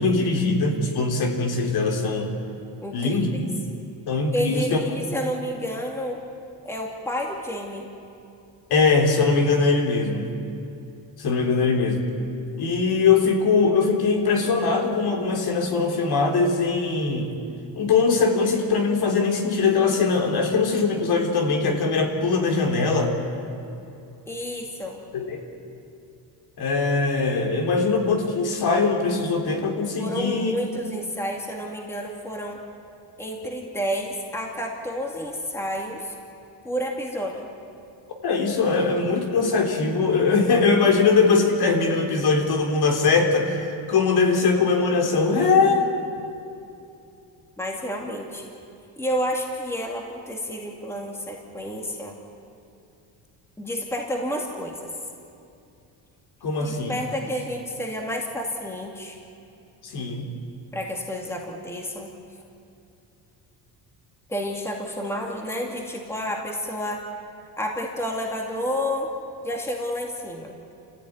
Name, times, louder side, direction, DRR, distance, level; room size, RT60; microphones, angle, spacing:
voice 1, 0.0-2.3 2.9-3.3 4.1-4.8 8.7-10.3 11.2-12.1 12.6-17.3 17.8-23.1 25.1-25.4 26.6-30.5 38.2-45.9 56.4-57.0 59.8-60.3, left 4 dB, 55° left, 2 dB, 3.7 m, -21 dB
voice 2, 2.8-3.4 4.3-6.2 6.6-7.9 24.3-25.0 30.0-32.6 33.2-36.1 36.6-37.5 47.6-48.5 49.0-52.1 53.6-54.9 56.6-59.2 60.7-62.1 64.3-67.0 67.6-69.1 69.4-70.6, equal, 5° left, 0 dB, 2.4 m, -30 dB
29.0 x 15.5 x 9.6 m, 2.7 s
cardioid pair, 150°, 46 cm